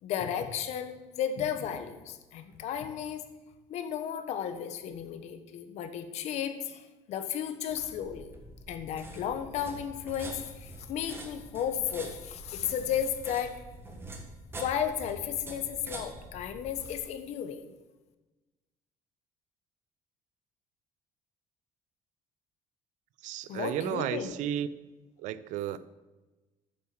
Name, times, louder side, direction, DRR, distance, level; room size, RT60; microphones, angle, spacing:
voice 1, 0.0-3.2 3.7-8.3 8.7-13.5 14.6-17.7 23.4-24.3, left 9 dB, 60° left, 9 dB, 1.2 m, -34 dB
sound 1, 7.7-17.0, right 1 dB, 20° right, 1.4 m, -45 dB
voice 2, 23.2-24.7 25.2-25.8, right 11 dB, 75° right, 16 dB, 0.6 m, -33 dB
9.3 x 7.2 x 7.8 m, 1.2 s
cardioid pair, 165°, 13 cm